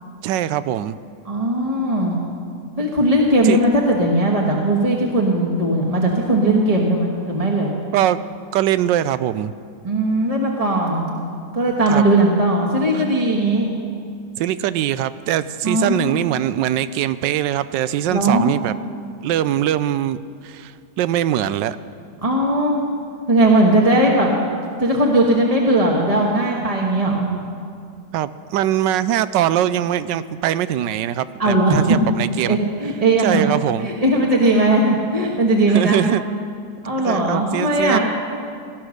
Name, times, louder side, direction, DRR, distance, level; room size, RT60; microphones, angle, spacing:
voice 1, 0.2-1.0 3.4-3.6 7.9-8.2 8.5-9.5 11.9-12.0 12.9-13.0 14.4-18.7 19.2-21.8 27.3-27.5 28.1-32.6 33.2-33.9 35.7-36.2 37.0-38.0, right 11 dB, 85° right, 15 dB, 1.3 m, -22 dB
voice 2, 1.2-2.2 2.8-7.7 9.8-11.1 11.5-13.7 15.6-16.1 18.1-18.5 22.2-22.8 23.3-24.3 24.8-27.3 31.4-32.0 32.5-33.4 33.8-36.0 36.8-38.0, right 1 dB, 20° right, -1 dB, 1.4 m, -18 dB
17.5 x 12.5 x 6.5 m, 2.4 s
omnidirectional pair, 1.9 m